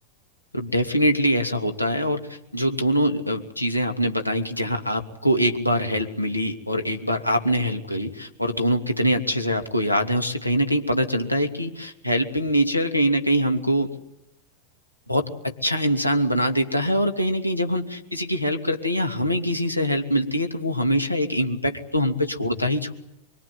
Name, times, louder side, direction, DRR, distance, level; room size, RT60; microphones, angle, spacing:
voice 1, 0.5-14.0 15.1-22.9, equal, 90° left, 5 dB, 2.8 m, -23 dB
24.5 x 24.5 x 9.6 m, 0.81 s
figure-of-eight pair, 90°, 0 cm